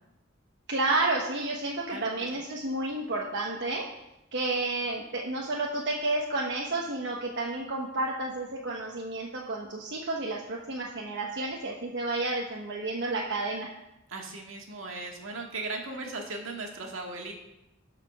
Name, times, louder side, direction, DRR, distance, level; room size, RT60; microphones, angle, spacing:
voice 1, 0.7-3.9 4.3-13.7, right 2 dB, 60° right, -2 dB, 1.2 m, -31 dB
voice 2, 1.9-2.3 14.1-17.3, right 3 dB, 75° right, 1 dB, 1.9 m, -37 dB
12.0 x 5.1 x 6.0 m, 0.90 s
head